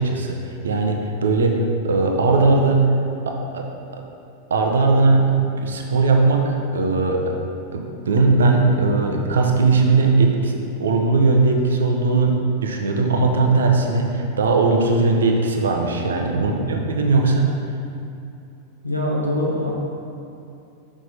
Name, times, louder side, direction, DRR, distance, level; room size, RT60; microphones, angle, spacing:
voice 1, 0.0-1.5 1.8-2.9 3.3-3.7 3.9-4.0 4.5-7.3 7.7-17.5, right 3 dB, 65° right, 2 dB, 0.7 m, -19 dB
voice 2, 16.4-16.7 18.8-19.7, left 1 dB, 90° left, -3 dB, 1.2 m, -24 dB
6.0 x 6.0 x 4.0 m, 2.7 s
figure-of-eight pair, 90°, 0 cm